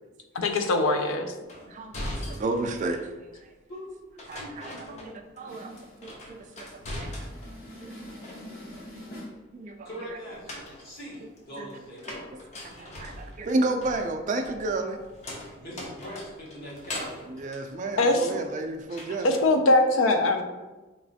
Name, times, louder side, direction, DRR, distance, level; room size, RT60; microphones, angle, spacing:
voice 1, 0.3-1.3 18.0-18.3 19.2-20.4, left 2 dB, 80° left, 6 dB, 0.4 m, -22 dB
sound 1, 1.5-3.1 4.2-5.5 5.8-7.6 8.0-8.8 10.2-18.5 18.9-19.5, left 1 dB, 35° left, 0.5 m, -41 dB
voice 2, 1.6-3.1 4.3-5.7 6.0-6.7 7.0-7.1 9.6-9.9 11.6-11.7 12.1-12.2 12.6-15.0 17.3-19.4, right 2 dB, 40° right, 5 dB, 0.3 m, -31 dB
voice 3, 4.1-9.4 9.8-12.8 15.6-17.4, equal, 50° left, -6 dB, 1.0 m, -43 dB
3.1 x 2.9 x 2.7 m, 1.1 s
head